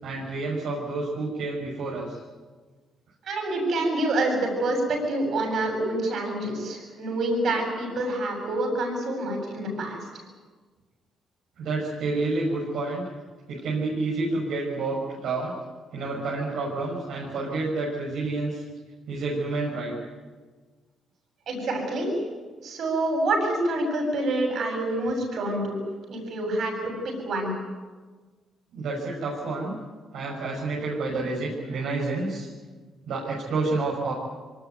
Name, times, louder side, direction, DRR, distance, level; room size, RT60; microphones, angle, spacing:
voice 1, 0.0-2.2 11.6-13.1 13.5-15.5 15.9-18.6 19.1-20.0 28.7-29.7 30.1-32.5 33.1-34.1, right 3 dB, 80° right, -4 dB, 5.9 m, -29 dB
voice 2, 3.2-10.0 21.5-22.2 22.6-25.8 26.1-27.6, right 1 dB, 65° right, 3 dB, 7.9 m, -27 dB
24.0 x 19.5 x 9.4 m, 1.4 s
cardioid pair, 90°, 0 cm